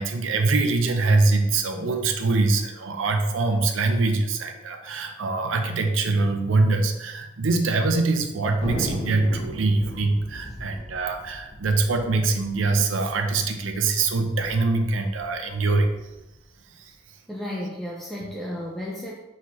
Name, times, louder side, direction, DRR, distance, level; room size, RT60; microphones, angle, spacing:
voice 1, 0.0-15.9 16.8-16.9, right 3 dB, 85° right, 6 dB, 0.5 m, -23 dB
Thunder, 8.6-13.4 13.7-13.8 14.0-14.5 15.0-16.2, equal, 70° left, 1.3 m, -35 dB
voice 2, 17.3-19.1, left 1 dB, ahead, -4 dB, 0.4 m, -33 dB
4.2 x 3.9 x 3.0 m, 1.0 s
head